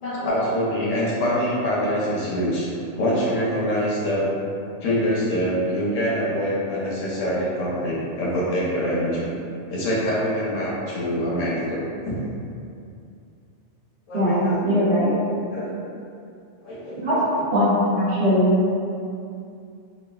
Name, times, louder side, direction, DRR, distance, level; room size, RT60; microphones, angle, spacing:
voice 1, 0.0-4.3 4.8-9.3 9.7-12.1 14.1-14.6 15.5-15.7 16.6-17.4, equal, 85° left, -6 dB, 1.1 m, -25 dB
voice 2, 14.1-15.1 17.0-17.1 17.5-18.6, equal, 65° right, -10 dB, 1.2 m, -20 dB
3.1 x 2.4 x 2.3 m, 2.5 s
omnidirectional pair, 1.3 m